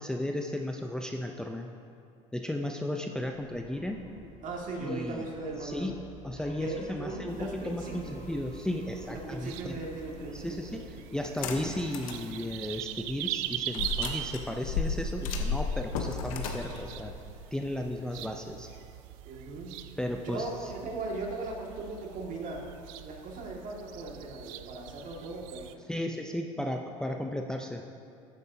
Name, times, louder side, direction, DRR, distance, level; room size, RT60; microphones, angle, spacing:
voice 1, 0.0-1.7 2.3-4.0 4.8-5.3 5.6-5.9 6.2-9.8 10.3-10.8 11.1-17.1 17.5-18.7 20.0-20.7 25.9-27.8, left 1 dB, 5° left, 3 dB, 0.6 m, -34 dB
sound 1, 3.3-16.0, equal, 45° left, 2.3 m, -51 dB
voice 2, 4.4-5.9 6.6-8.2 9.1-10.8 19.2-19.8 20.2-22.7 23.0-25.8, right 2 dB, 50° right, -1 dB, 2.1 m, -38 dB
sound 2, 7.3-25.7, right 13 dB, 75° right, 0.5 m, -42 dB
sound 3, 11.2-12.2 12.7-12.8 13.7-18.0, left 5 dB, 85° left, 1.0 m, -33 dB
13.5 x 9.0 x 2.8 m, 2.5 s
hypercardioid pair, 80°, 17 cm